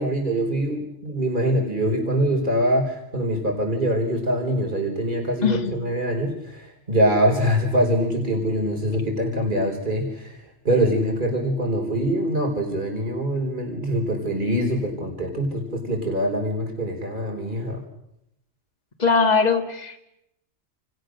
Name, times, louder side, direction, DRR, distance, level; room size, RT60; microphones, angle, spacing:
voice 1, 0.0-10.4 10.6-17.8, equal, 40° right, 2 dB, 5.0 m, -24 dB
voice 2, 5.4-5.7 19.0-20.0, left 5 dB, 35° left, 4 dB, 2.2 m, -21 dB
30.0 x 29.5 x 6.6 m, 0.83 s
omnidirectional pair, 1.3 m